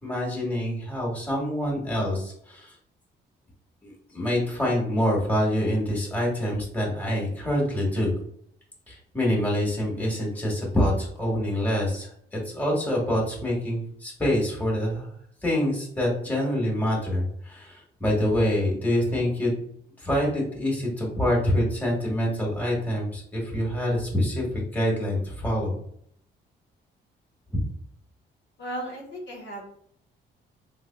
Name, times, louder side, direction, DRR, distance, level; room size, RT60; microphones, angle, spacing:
voice 1, 0.0-2.7 3.8-8.2 8.9-15.1 15.4-19.7 20.0-25.8 27.5-27.6, left 1 dB, 10° left, -3 dB, 1.5 m, -26 dB
voice 2, 28.6-29.6, right 1 dB, 65° left, -2 dB, 1.2 m, -35 dB
3.4 x 3.3 x 2.2 m, 0.66 s
cardioid pair, 90°, 20 cm